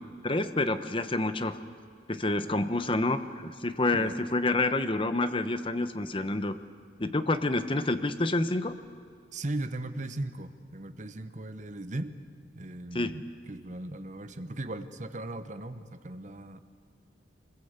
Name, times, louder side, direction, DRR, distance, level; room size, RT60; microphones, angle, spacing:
voice 1, 0.2-1.6 2.1-6.5 7.0-8.7 12.9-13.1, left 2 dB, 30° left, 10 dB, 1.0 m, -28 dB
voice 2, 9.3-12.2 12.5-16.6, right 1 dB, 40° right, 9 dB, 1.1 m, -38 dB
24.5 x 21.0 x 8.1 m, 2.1 s
head